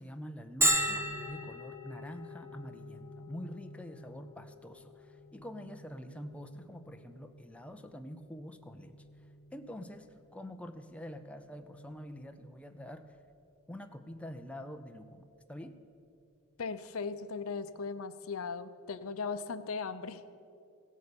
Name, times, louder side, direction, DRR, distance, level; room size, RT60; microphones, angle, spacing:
voice 1, 0.0-9.0 9.5-13.2 13.7-15.2 15.5-15.8, equal, 5° left, 6 dB, 0.5 m, -46 dB
Bell, 0.6-16.0, equal, 10° right, 1.2 m, -39 dB
voice 2, 16.6-20.2, left 5 dB, 70° left, 12 dB, 0.6 m, -38 dB
16.0 x 8.3 x 6.9 m, 2.5 s
head